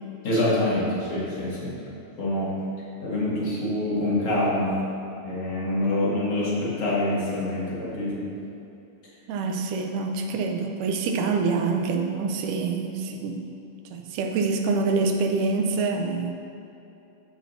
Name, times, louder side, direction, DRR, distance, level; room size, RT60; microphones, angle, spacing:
voice 1, 0.2-1.7 2.2-2.6 3.0-4.8 5.2-8.2, left 1 dB, 55° left, -7 dB, 2.6 m, -26 dB
voice 2, 9.3-13.5 13.9-16.3, right 4 dB, 90° right, 4 dB, 2.3 m, -26 dB
13.5 x 6.1 x 2.7 m, 2.8 s
omnidirectional pair, 3.6 m